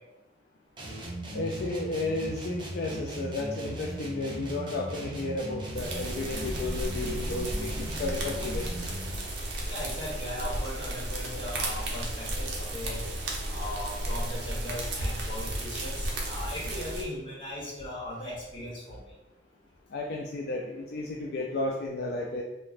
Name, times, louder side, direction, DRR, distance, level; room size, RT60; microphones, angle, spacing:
sound 1, 0.8-9.2, right 1 dB, 25° right, 0.5 m, -38 dB
voice 1, 1.3-8.7 19.9-22.4, left 2 dB, 55° left, -2 dB, 0.3 m, -33 dB
sound 2, 5.8-17.0, right 1 dB, 65° right, 0.6 m, -34 dB
voice 2, 9.6-13.0 13.5-19.0, left 1 dB, 30° left, -6 dB, 1.0 m, -38 dB
2.8 x 2.1 x 4.0 m, 0.96 s
head